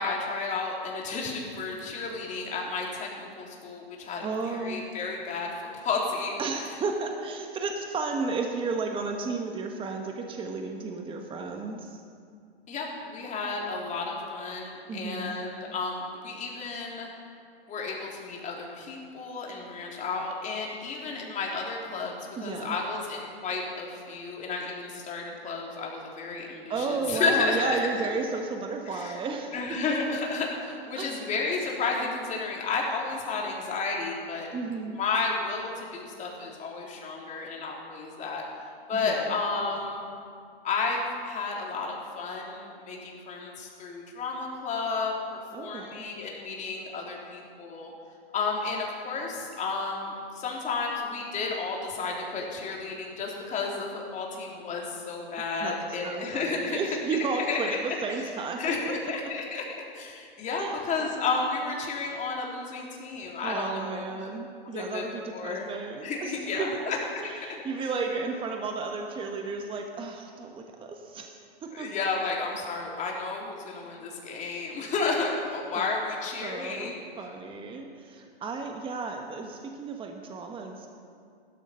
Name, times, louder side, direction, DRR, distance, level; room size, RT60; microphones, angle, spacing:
voice 1, 0.0-6.4 12.7-17.1 17.7-22.2 22.4-27.8 28.9-29.2 29.5-34.5 34.9-38.4 38.9-40.0 40.6-47.9 48.3-56.8 57.3-58.3 58.6-59.6 59.9-64.2 64.7-65.0 65.3-65.7 66.0-67.0 71.7-77.0, left 4 dB, 25° left, -1 dB, 3.5 m, -32 dB
voice 2, 4.2-4.8 6.4-12.0 14.9-15.3 22.4-22.8 26.7-29.5 31.0-31.3 34.5-35.0 38.9-39.4 45.5-46.1 55.6-55.8 56.0-59.1 60.6-60.8 63.4-66.7 67.2-71.9 75.7-75.8 76.4-80.9, right 4 dB, 15° right, 3 dB, 1.3 m, -33 dB
16.0 x 13.0 x 5.7 m, 2.3 s
hypercardioid pair, 115°, 31 cm